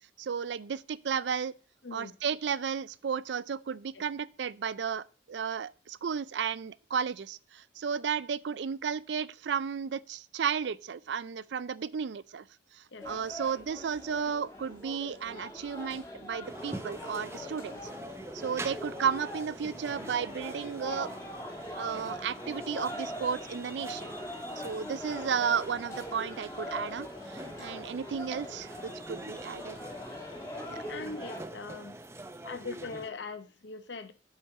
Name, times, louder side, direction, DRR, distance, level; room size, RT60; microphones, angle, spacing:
voice 1, 0.2-1.5 1.9-12.5 12.7-17.8 18.3-21.1 21.8-24.1 24.5-29.8 30.7-30.8, right 7 dB, 70° right, 0.4 m, -33 dB
voice 2, 1.8-2.1 3.9-4.0 12.9-13.1 30.9-32.0 32.4-34.1, left 3 dB, 70° left, 0.8 m, -41 dB
sound 1, 13.0-31.4, left 1 dB, 15° left, 1.4 m, -42 dB
sound 2, 16.4-33.1, right 2 dB, 15° right, 0.5 m, -45 dB
7.9 x 4.4 x 6.5 m
head